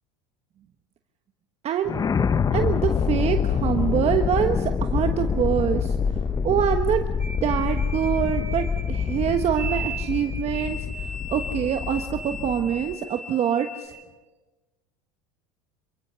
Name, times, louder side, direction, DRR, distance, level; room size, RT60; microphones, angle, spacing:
voice 1, 1.6-1.9 2.5-6.0 6.4-7.0 7.4-13.9, right 9 dB, 40° right, 6 dB, 1.2 m, -25 dB
sound 1, 1.9-12.9, left 6 dB, 20° left, 0.7 m, -26 dB
sound 2, 7.2-13.9, right 1 dB, 15° right, 7.4 m, -38 dB
27.0 x 16.0 x 7.0 m, 1.2 s
supercardioid pair, 115°, 17 cm